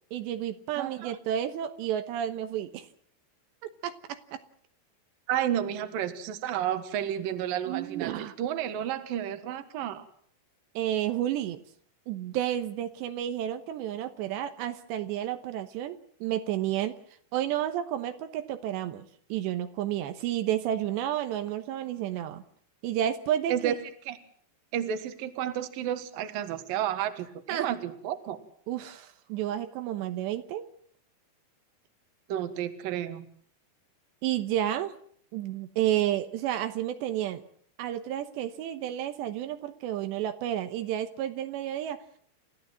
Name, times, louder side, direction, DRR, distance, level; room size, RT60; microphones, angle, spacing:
voice 1, 0.1-2.9 3.8-4.4 7.7-8.3 10.8-11.6 12.1-16.9 17.3-22.4 22.8-23.7 27.5-27.7 28.7-30.7 34.2-34.9 35.3-37.4 37.8-42.0, right 11 dB, 80° right, 8 dB, 3.2 m, -31 dB
voice 2, 0.7-1.2 5.3-10.1 23.5-23.7 24.1-24.2 24.7-28.4 32.3-33.3, right 10 dB, 60° right, 10 dB, 2.9 m, -31 dB
29.5 x 14.0 x 7.7 m, 0.62 s
omnidirectional pair, 5.0 m